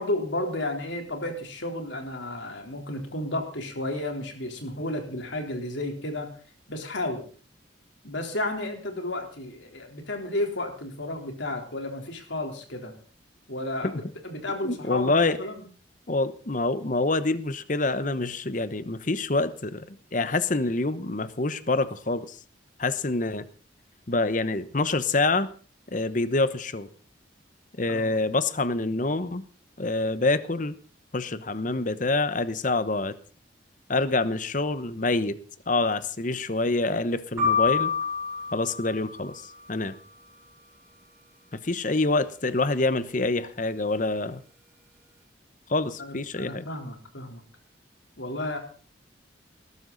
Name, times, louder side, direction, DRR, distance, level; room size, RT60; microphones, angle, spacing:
voice 1, 0.0-6.3 6.7-7.2 8.0-12.9 13.5-15.6 27.9-28.2 46.0-47.4 48.2-48.6, left 1 dB, 75° left, 3 dB, 3.7 m, -32 dB
voice 2, 14.6-15.4 16.1-22.4 22.8-23.4 24.1-25.5 25.9-26.9 27.8-29.4 29.8-30.8 31.1-33.2 33.9-35.4 35.7-37.9 38.5-39.4 39.7-39.9 41.6-44.4 45.7-46.7, left 2 dB, 40° left, 13 dB, 1.0 m, -26 dB
sound 1, 37.4-39.5, left 6 dB, 15° right, 6.9 m, -27 dB
19.5 x 12.5 x 4.0 m, 0.40 s
head